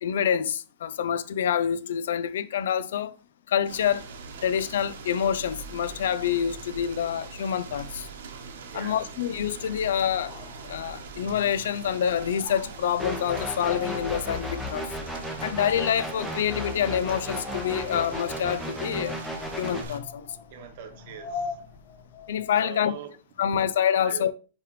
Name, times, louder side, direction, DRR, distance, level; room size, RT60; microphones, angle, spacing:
voice 1, 0.0-3.2 3.5-4.1 4.4-8.1 8.7-10.3 10.6-14.9 15.4-19.2 19.6-20.3 22.3-22.9 23.4-24.3, left 9 dB, 70° left, 0.4 m, -27 dB
sound 1, 3.7-20.0, right 4 dB, 75° right, 1.1 m, -42 dB
voice 2, 8.7-9.0 20.5-21.6 22.6-23.1 23.6-23.7 24.0-24.2, right 7 dB, 45° right, 1.0 m, -41 dB
sound 2, 10.0-22.6, left 5 dB, 40° left, 1.7 m, -43 dB
sound 3, 13.0-19.8, equal, ahead, 0.7 m, -35 dB
9.6 x 3.2 x 3.2 m
supercardioid pair, 165°, 0 cm